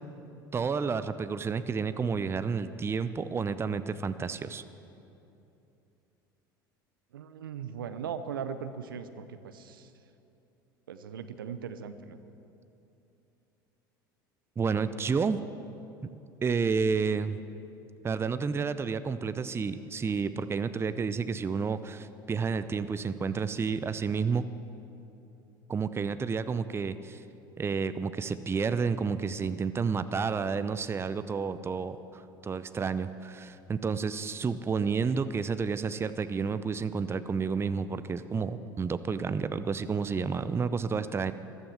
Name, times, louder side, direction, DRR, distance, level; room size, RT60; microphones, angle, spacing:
voice 1, 0.5-4.6 14.6-15.4 16.4-17.4 18.0-24.4 25.7-27.2 27.6-41.3, right 5 dB, 20° right, 13 dB, 0.6 m, -30 dB
voice 2, 7.1-9.9 10.9-12.2, right 7 dB, 80° right, 11 dB, 0.8 m, -39 dB
14.0 x 12.5 x 7.1 m, 2.8 s
hypercardioid pair, 70°, 11 cm